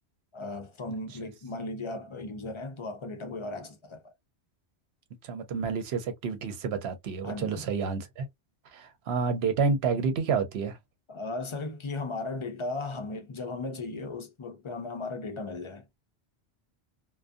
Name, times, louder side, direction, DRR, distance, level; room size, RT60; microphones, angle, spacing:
voice 1, 0.3-4.1 7.2-7.7 11.1-15.8, left 2 dB, 45° left, 0.4 m, -36 dB
voice 2, 5.2-8.3 8.7-10.8, right 5 dB, 75° right, 0.9 m, -29 dB
2.5 x 2.2 x 2.3 m
omnidirectional pair, 1.1 m